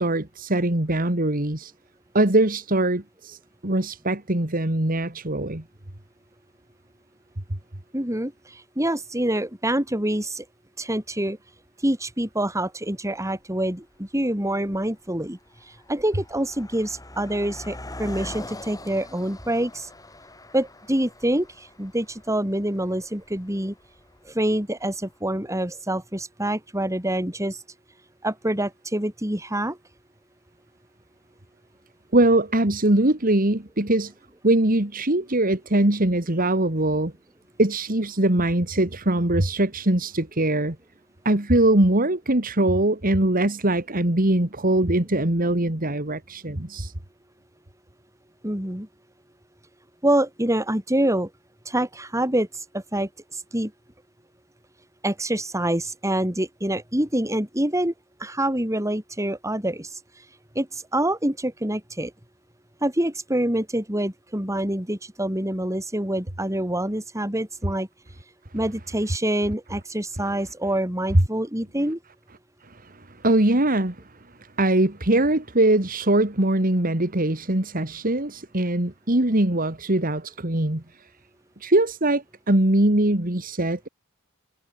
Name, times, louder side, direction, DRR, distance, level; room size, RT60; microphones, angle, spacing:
voice 1, 0.0-1.7 2.1-3.4 3.6-5.6 32.1-34.1 34.4-37.1 37.6-40.8 41.2-46.9 73.2-74.0 74.6-80.8 81.6-83.9, right 1 dB, 40° right, 2.3 m, -22 dB
voice 2, 7.9-10.4 10.8-11.4 11.8-15.4 15.9-19.9 20.5-23.7 24.3-27.6 28.2-29.8 48.4-48.9 50.0-51.3 51.7-52.5 52.7-53.7 55.0-57.9 58.2-59.9 60.5-62.1 62.8-67.9 68.5-72.0, right 1 dB, 15° right, 4.2 m, -26 dB
Car passing by, 13.1-13.2 13.9-14.2 14.5-24.9, left 1 dB, 15° left, 4.0 m, -43 dB
head